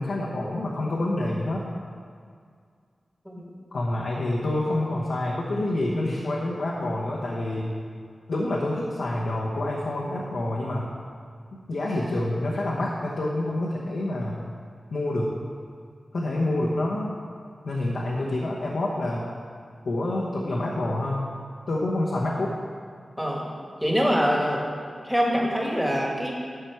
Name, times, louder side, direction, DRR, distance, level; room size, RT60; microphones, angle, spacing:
voice 1, 0.0-1.7 3.7-7.7 8.3-10.9 11.5-14.4 14.9-15.3 16.1-17.2 17.6-19.3 19.8-21.3 21.7-22.5, left 1 dB, 80° left, -4 dB, 1.1 m, -27 dB
voice 2, 23.2-23.5 23.8-24.6 25.0-26.3, equal, 5° right, -2 dB, 1.8 m, -24 dB
11.5 x 5.9 x 4.7 m, 2.1 s
wide cardioid pair, 75°, 0 cm